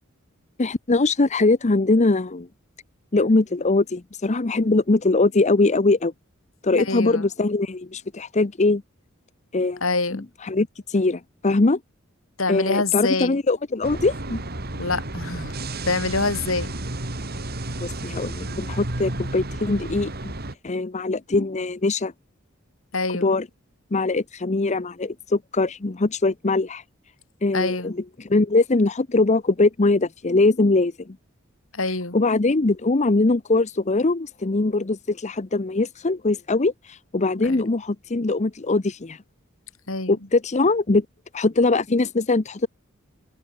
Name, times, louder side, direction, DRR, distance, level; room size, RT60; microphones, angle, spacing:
voice 1, 0.6-2.5 3.1-6.1 6.6-8.8 9.5-9.8 10.1-11.8 12.5-14.4 17.8-20.3 20.6-22.1 23.1-23.5 23.9-26.8 27.4-31.2 32.1-39.2 40.1-41.1 41.3-42.7, left 3 dB, 35° left, 0.8 m, -22 dB
voice 2, 6.7-7.2 9.8-10.2 12.4-13.4 14.8-15.5 15.9-16.7 22.9-23.3 27.5-27.9 31.7-32.2 37.4-37.6 39.9-40.2, left 3 dB, 80° left, 5.9 m, -25 dB
sound 1, 13.8-20.5, right 2 dB, 50° right, 3.0 m, -32 dB
head